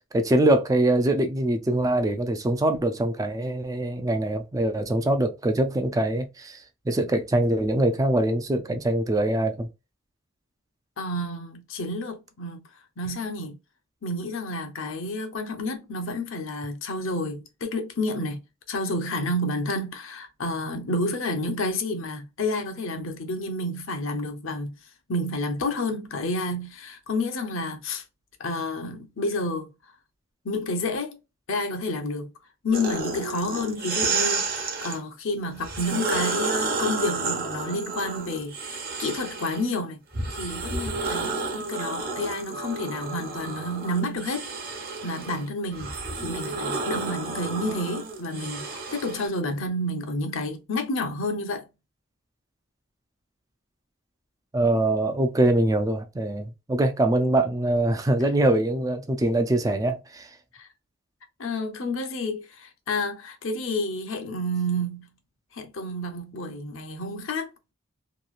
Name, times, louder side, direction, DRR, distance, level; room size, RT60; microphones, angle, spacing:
voice 1, 0.1-9.7 54.5-60.3, right 1 dB, 15° right, 0.3 m, -23 dB
voice 2, 11.0-12.6 13.0-13.6 14.0-18.4 18.7-24.8 25.1-28.0 28.4-29.7 30.4-31.2 31.5-32.3 32.6-40.0 40.3-44.5 45.0-51.6 60.5-60.7 61.4-65.1 65.5-67.7, left 1 dB, 70° left, 0.7 m, -30 dB
sound 1, 32.7-35.0 35.6-39.7 40.1-49.3, right 4 dB, 50° right, 0.8 m, -31 dB
2.9 x 2.3 x 2.4 m
head